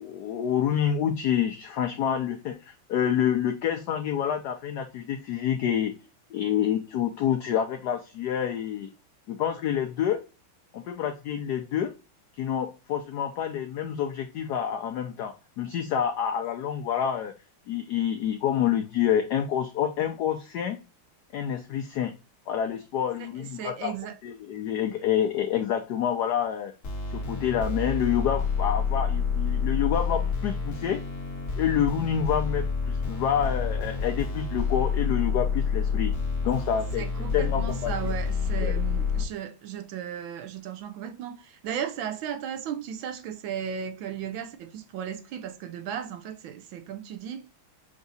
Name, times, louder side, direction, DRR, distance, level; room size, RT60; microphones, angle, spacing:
voice 1, 0.0-5.9 6.3-8.9 9.3-10.2 10.7-11.9 12.4-17.3 17.7-20.8 21.3-22.1 22.5-23.9 24.2-26.7 27.1-31.0 31.6-36.1 36.4-37.0 37.3-37.9 38.6-38.7, left 9 dB, 85° left, 0.9 m, -27 dB
voice 2, 23.2-24.2 37.0-47.5, right 8 dB, 75° right, 1.3 m, -35 dB
sound 1, 26.8-39.2, left 5 dB, 45° left, 1.3 m, -28 dB
5.9 x 2.7 x 2.6 m
omnidirectional pair, 2.3 m